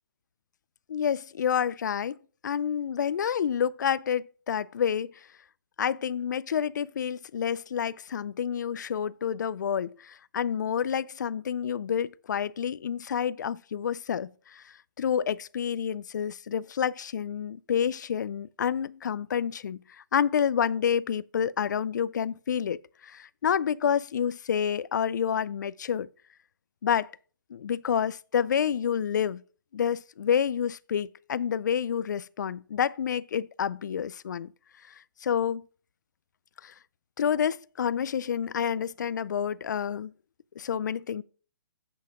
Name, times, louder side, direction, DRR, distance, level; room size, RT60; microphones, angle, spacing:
voice 1, 0.9-2.2 2.4-5.1 5.8-14.6 15.0-19.8 20.1-26.1 26.8-27.1 27.5-29.4 29.7-34.5 35.2-35.6 36.6-36.7 37.2-40.1 40.6-41.2, left 8 dB, 55° left, 0.4 m, -28 dB
7.8 x 6.0 x 5.8 m
hypercardioid pair, 170°, 11 cm